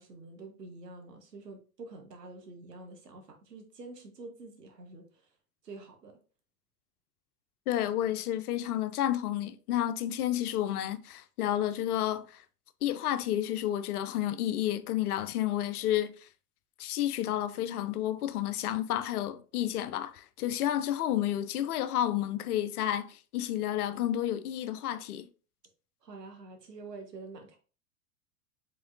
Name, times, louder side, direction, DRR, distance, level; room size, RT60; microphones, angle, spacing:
voice 1, 0.0-5.1 5.6-6.1 26.0-27.6, right 3 dB, 85° right, 1.1 m, -47 dB
voice 2, 7.7-12.4 12.8-16.1 16.8-25.3, left 12 dB, 70° left, 0.6 m, -31 dB
4.8 x 3.8 x 2.6 m
figure-of-eight pair, 90°, 47 cm